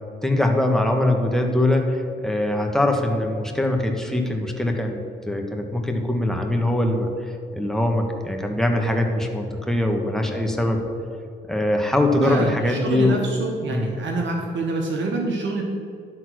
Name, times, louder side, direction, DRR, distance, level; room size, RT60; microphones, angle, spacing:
voice 1, 0.2-10.8 11.5-13.2 13.7-13.9, left 1 dB, ahead, 2 dB, 1.4 m, -22 dB
voice 2, 12.2-15.6, right 3 dB, 75° right, 0 dB, 1.1 m, -26 dB
11.5 x 4.0 x 6.2 m, 2.5 s
cardioid pair, 70°, 19 cm